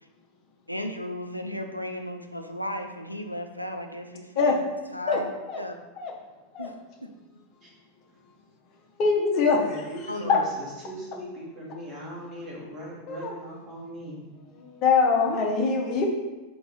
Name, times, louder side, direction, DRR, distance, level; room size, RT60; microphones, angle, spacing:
voice 1, 0.7-4.6 4.9-5.3 5.6-5.7 6.6-6.8 7.0-7.1 10.1-10.4, left 1 dB, 90° left, 5 dB, 0.3 m, -35 dB
voice 2, 9.0-9.6 10.3-10.4 13.1-13.3 14.6-16.0, left 5 dB, 40° left, 0 dB, 0.6 m, -23 dB
voice 3, 9.5-14.3, equal, 25° right, -6 dB, 1.3 m, -39 dB
3.7 x 2.9 x 3.9 m, 1.2 s
figure-of-eight pair, 90°, 0 cm